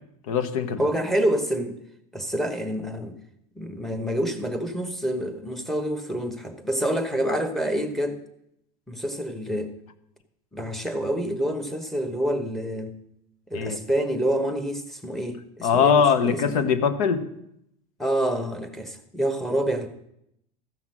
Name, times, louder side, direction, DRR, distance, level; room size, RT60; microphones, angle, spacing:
voice 1, 0.3-0.8 13.5-13.8 15.6-17.3, left 6 dB, 80° left, 10 dB, 1.3 m, -21 dB
voice 2, 0.8-1.8 2.1-3.2 3.6-8.2 8.9-9.7 10.5-13.0 13.5-16.7 18.0-19.9, right 1 dB, ahead, 8 dB, 1.0 m, -27 dB
14.0 x 5.9 x 7.7 m, 0.77 s
supercardioid pair, 160°, 18 cm